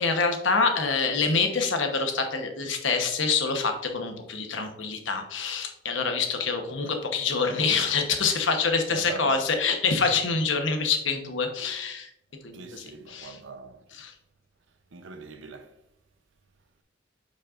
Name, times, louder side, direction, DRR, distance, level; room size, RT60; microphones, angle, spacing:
voice 1, 0.0-12.1 12.4-13.4 13.9-14.1, left 4 dB, 75° left, 1.1 m, -26 dB
voice 2, 8.9-9.4 12.5-13.8 14.9-15.7, right 4 dB, 75° right, 0.8 m, -40 dB
8.7 x 5.4 x 2.5 m
head